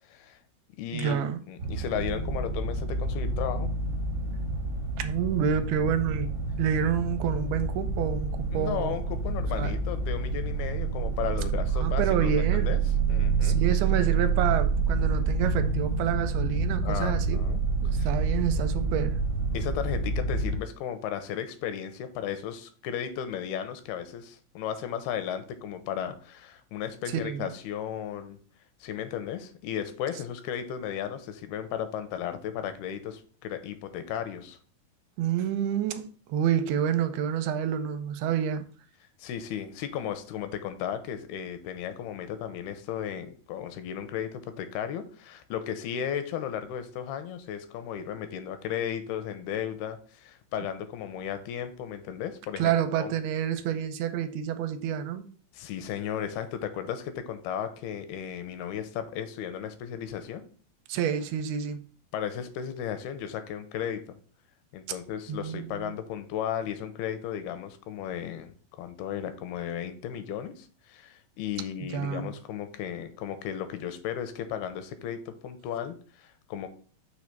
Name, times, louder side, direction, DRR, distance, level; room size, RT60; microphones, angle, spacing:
voice 1, 0.1-0.4 0.8-1.2 1.5-3.7 8.5-12.8 13.1-13.6 16.8-18.1 19.5-28.4 28.8-34.6 39.2-52.7 53.0-53.1 55.5-60.4 62.1-64.2 64.7-76.7, left 9 dB, 85° left, 2.6 m, -35 dB
voice 2, 0.9-1.4 5.0-9.0 9.6-9.7 11.8-12.8 13.4-17.4 17.8-19.2 27.1-27.5 35.2-38.6 52.6-55.3 60.9-61.8 65.3-65.7 71.9-72.3, right 8 dB, 80° right, 2.5 m, -28 dB
sound 1, 1.6-20.6, right 4 dB, 60° right, 1.5 m, -28 dB
6.3 x 3.2 x 5.8 m
omnidirectional pair, 4.5 m